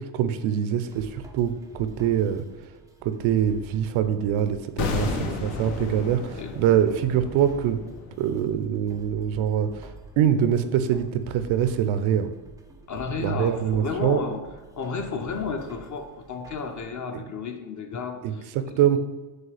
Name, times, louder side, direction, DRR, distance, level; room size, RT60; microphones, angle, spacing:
voice 1, 0.0-2.4 3.0-7.8 8.2-9.9 10.2-12.3 13.2-14.2 17.1-17.2 18.2-19.0, right 9 dB, 70° right, 10 dB, 0.5 m, -24 dB
sound 1, 0.9-16.8, right 2 dB, 10° right, 0.3 m, -47 dB
sound 2, 4.8-9.8 10.0-10.2, left 4 dB, 75° left, 0.8 m, -33 dB
voice 2, 4.8-5.7 6.3-6.5 12.9-14.5 14.8-18.5, left 5 dB, 40° left, 6 dB, 0.6 m, -33 dB
6.2 x 2.3 x 3.2 m, 1.2 s
supercardioid pair, 80°, 50 cm